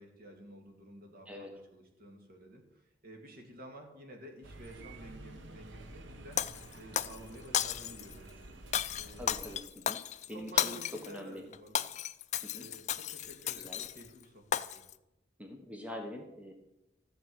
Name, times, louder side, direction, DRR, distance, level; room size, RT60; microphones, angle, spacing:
voice 1, 0.0-6.4 6.8-8.4 9.0-9.5 10.3-11.9 12.5-14.8, right 1 dB, 55° right, 3 dB, 2.1 m, -52 dB
sound 1, 4.4-9.6, right 2 dB, 85° right, 1.1 m, -50 dB
Shatter, 6.4-7.2 7.5-8.1 8.7-11.1 11.5-14.1 14.5-14.9, left 10 dB, 40° left, 0.4 m, -34 dB
voice 2, 9.2-10.0 10.3-10.8 11.1-11.4 12.4-12.7 13.6-13.8 15.4-16.5, left 1 dB, 10° right, 2 dB, 1.2 m, -44 dB
14.0 x 5.1 x 7.7 m, 0.92 s
head